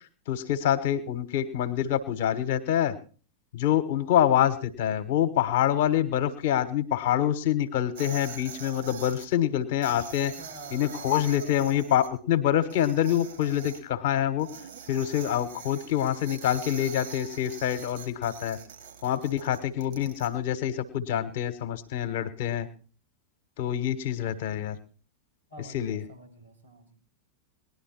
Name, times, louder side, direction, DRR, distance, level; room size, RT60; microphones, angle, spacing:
voice 1, 0.3-2.9 3.5-10.3 10.7-14.5 14.9-18.6 19.0-22.7 23.6-24.8 25.7-26.0, left 11 dB, 55° left, 11 dB, 1.4 m, -26 dB
sound 1, 8.0-9.3 9.8-12.1 12.6-13.8 14.4-20.3, right 7 dB, 60° right, 3.9 m, -44 dB
voice 2, 9.8-11.2 25.5-27.0, right 2 dB, 85° right, -4 dB, 5.7 m, -48 dB
19.5 x 11.5 x 4.6 m, 0.40 s
figure-of-eight pair, 90°, 0 cm